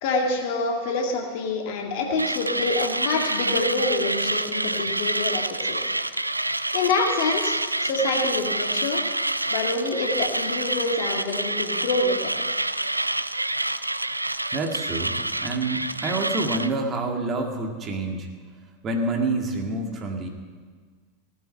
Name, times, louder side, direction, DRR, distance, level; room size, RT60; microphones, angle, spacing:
voice 1, 0.0-5.8 6.7-9.0 9.5-12.3, left 3 dB, 55° left, 1 dB, 2.2 m, -26 dB
Mechanisms, 2.2-16.7, right 2 dB, 90° right, 0.3 m, -27 dB
voice 2, 14.5-18.3 18.8-20.3, right 2 dB, 30° right, 2 dB, 2.0 m, -27 dB
17.0 x 7.9 x 7.6 m, 1.6 s
figure-of-eight pair, 85°, 0 cm